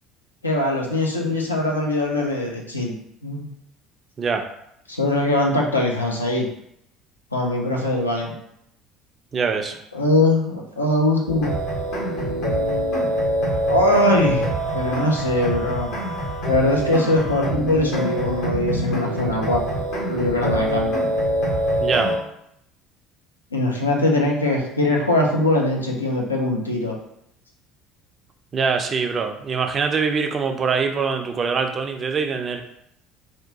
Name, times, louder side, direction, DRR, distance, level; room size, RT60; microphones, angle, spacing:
voice 1, 0.4-3.0 3.2-3.5 4.9-6.4 7.3-8.4 9.9-11.5 13.6-14.5 14.7-15.9 16.5-19.8 20.1-20.9 23.5-26.9, left 1 dB, 85° left, -1 dB, 0.4 m, -21 dB
voice 2, 9.3-9.7 21.8-22.1 28.5-32.6, right 5 dB, 35° right, 5 dB, 0.3 m, -23 dB
sound 1, 11.3-22.2, equal, 60° left, 0.7 m, -24 dB
2.7 x 2.2 x 2.7 m, 0.75 s
figure-of-eight pair, 60°, 0 cm